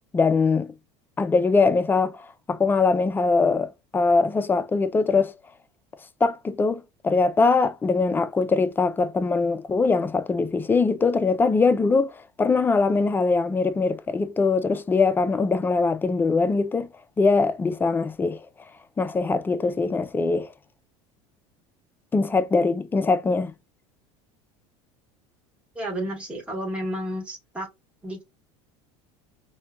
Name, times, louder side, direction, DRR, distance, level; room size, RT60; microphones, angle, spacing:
voice 1, 0.1-0.7 1.2-5.3 6.2-12.1 12.4-16.9 17.2-18.4 19.0-20.5 22.1-23.5, left 4 dB, 15° left, 0.3 m, -22 dB
voice 2, 25.7-27.7 28.0-28.2, equal, 10° right, 1.0 m, -31 dB
5.1 x 2.2 x 2.3 m
supercardioid pair, 120°, 14 cm